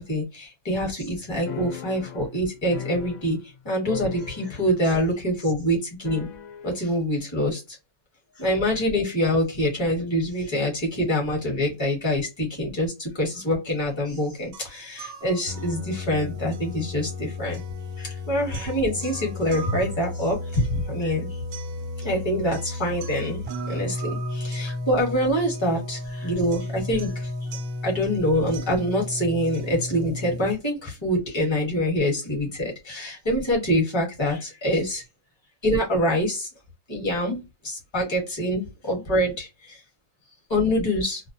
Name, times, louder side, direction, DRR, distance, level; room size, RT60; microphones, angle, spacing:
voice 1, 0.0-3.4 3.6-6.3 6.6-7.8 8.4-17.6 18.0-21.4 22.0-27.3 27.8-35.0 35.6-36.5 36.9-39.8 40.5-41.2, equal, 20° left, 0.9 m, -25 dB
sound 1, 1.5-3.6 3.8-4.9 5.1-5.2 6.0-6.8, left 8 dB, 70° left, 0.8 m, -37 dB
sound 2, 14.5-30.5, left 2 dB, 85° right, 1.1 m, -33 dB
2.5 x 2.0 x 2.6 m
omnidirectional pair, 1.6 m